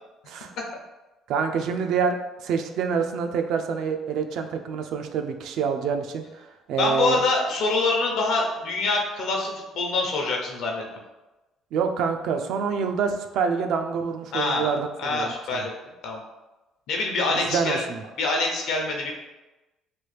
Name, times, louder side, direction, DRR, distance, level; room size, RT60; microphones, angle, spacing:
voice 1, 1.3-2.2 2.4-7.2 11.7-15.7 17.3-18.0, right 6 dB, 70° right, 6 dB, 0.3 m, -27 dB
voice 2, 6.8-10.8 14.3-14.7 15.0-15.7 16.0-16.2 16.9-17.8 18.2-19.1, left 3 dB, 70° left, 0 dB, 0.7 m, -25 dB
3.1 x 2.3 x 3.2 m, 1.1 s
cardioid pair, 120°, 0 cm